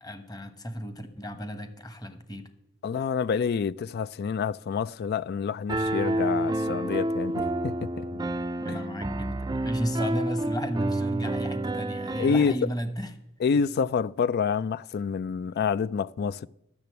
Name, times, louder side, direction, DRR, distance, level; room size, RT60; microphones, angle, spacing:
voice 1, 0.0-2.5 8.6-13.1 15.4-15.5, equal, 20° left, 1.1 m, -34 dB
voice 2, 2.8-8.2 8.7-8.8 12.2-12.5 13.4-16.5, left 6 dB, 50° left, 0.3 m, -27 dB
Piano, 5.7-12.5, right 1 dB, 20° right, 0.4 m, -29 dB
12.0 x 6.7 x 8.1 m
head